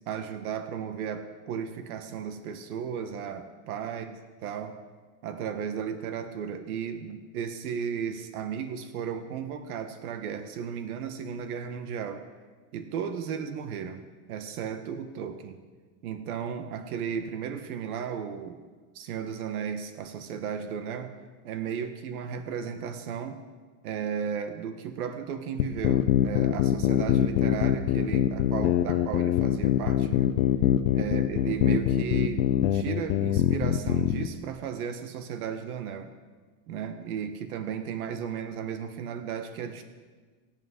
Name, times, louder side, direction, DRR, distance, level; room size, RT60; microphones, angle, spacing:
voice 1, 0.1-4.1 4.4-4.8 5.2-12.2 12.7-15.6 16.0-18.6 18.9-21.1 21.4-23.4 23.8-30.4 30.9-36.1 36.7-39.8, right 7 dB, 75° right, 8 dB, 1.3 m, -35 dB
sound 1, 25.6-34.3, left 12 dB, 55° left, 0.7 m, -24 dB
22.5 x 9.0 x 3.7 m, 1.4 s
supercardioid pair, 175°, 45 cm